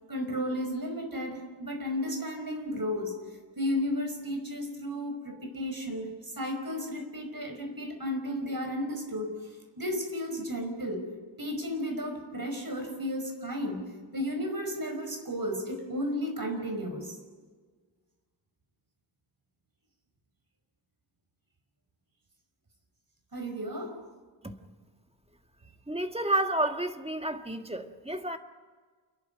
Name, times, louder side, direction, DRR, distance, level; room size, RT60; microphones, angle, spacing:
voice 1, 0.1-3.2 3.5-11.0 11.4-13.8 14.1-17.1 23.3-24.0, equal, 50° right, 5.1 m, -33 dB
voice 2, 25.9-28.4, right 1 dB, 15° right, 1.6 m, -30 dB
28.5 x 11.5 x 9.5 m
wide cardioid pair, 65°, 44 cm